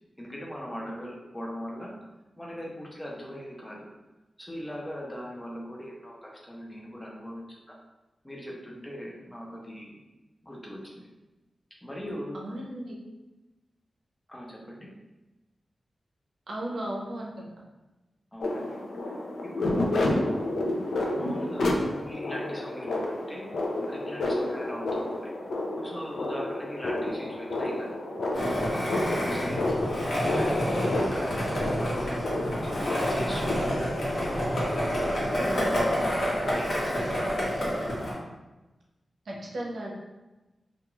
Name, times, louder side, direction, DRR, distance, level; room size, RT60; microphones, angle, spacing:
voice 1, 0.2-1.9 2.4-3.9 4.4-7.8 8.2-10.0 10.4-11.1 11.8-12.4 14.3-14.9 18.3-19.1 19.4-20.0 21.1-23.5 23.8-25.3 25.7-28.2 28.7-29.6 30.1-32.2 32.6-33.8 34.1-37.2, equal, 15° left, -3 dB, 0.6 m, -40 dB
voice 2, 12.3-12.9 16.5-17.3 39.3-39.9, right 1 dB, 75° right, -2 dB, 0.6 m, -35 dB
sound 1, 18.4-33.5, left 1 dB, 90° left, 0.3 m, -30 dB
Skateboard, 28.3-38.1, equal, 65° left, 1.0 m, -28 dB
2.4 x 2.3 x 2.9 m, 1.1 s
wide cardioid pair, 110°, 0 cm